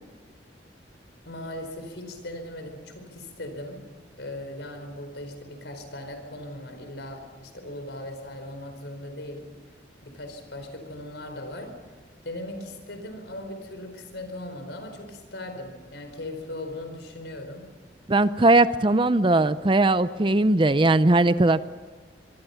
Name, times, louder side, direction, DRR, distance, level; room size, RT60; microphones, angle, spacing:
voice 1, 1.2-3.8 4.2-9.5 10.0-11.8 12.2-17.7, left 1 dB, 75° left, 7 dB, 4.6 m, -38 dB
voice 2, 18.1-21.6, right 2 dB, 25° right, 14 dB, 0.6 m, -19 dB
25.0 x 24.0 x 5.8 m, 1.5 s
head